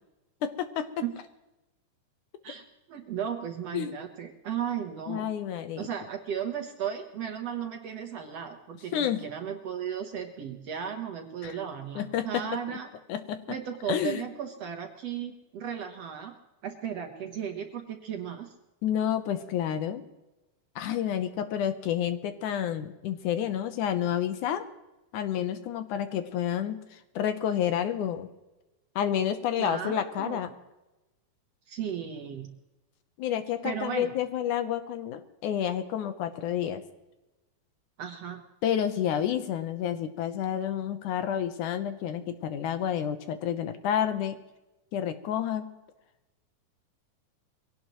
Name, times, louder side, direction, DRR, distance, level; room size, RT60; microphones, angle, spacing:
voice 1, 0.4-0.9 3.7-3.9 5.1-5.9 8.9-9.2 11.4-11.6 12.0-12.4 13.1-13.4 13.9-14.2 18.8-20.0 20.8-24.6 25.1-26.8 27.2-28.3 29.0-30.5 33.2-36.8 38.6-44.4 44.9-45.7, left 9 dB, 75° left, 9 dB, 2.2 m, -29 dB
voice 2, 2.9-5.3 5.8-12.9 13.5-16.4 16.6-18.5 29.6-30.4 31.7-32.5 33.6-34.1 38.0-38.4, right 8 dB, 60° right, 4 dB, 1.9 m, -35 dB
23.0 x 17.5 x 3.1 m, 1.0 s
omnidirectional pair, 3.9 m